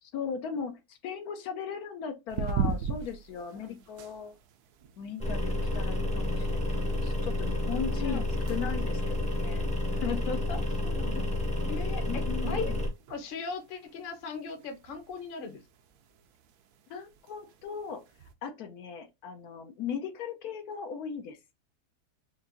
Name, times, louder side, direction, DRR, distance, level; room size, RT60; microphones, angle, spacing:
voice 1, 0.0-4.3 5.0-9.7 9.9-10.6 12.0-12.8 16.9-18.0 18.4-21.4, left 7 dB, 75° left, 1.1 m, -38 dB
sound 1, 2.3-18.3, right 5 dB, 75° right, 1.1 m, -41 dB
sound 2, 5.2-12.9, left 1 dB, 5° left, 0.5 m, -30 dB
voice 2, 7.9-8.2 10.5-11.2 11.6-12.7 13.1-15.6, left 4 dB, 45° left, 0.8 m, -39 dB
4.6 x 2.5 x 2.5 m
omnidirectional pair, 1.7 m